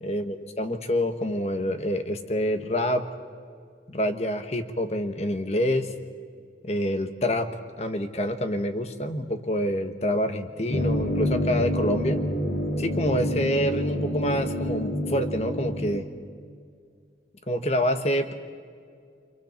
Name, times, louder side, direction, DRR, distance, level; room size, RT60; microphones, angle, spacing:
voice 1, 0.0-3.0 3.9-5.9 6.6-7.5 7.8-12.2 12.8-16.1 17.5-18.3, equal, 35° left, 7 dB, 1.4 m, -27 dB
sound 1, 10.7-16.0, equal, 60° left, 2.3 m, -27 dB
30.0 x 27.0 x 4.4 m, 2.2 s
head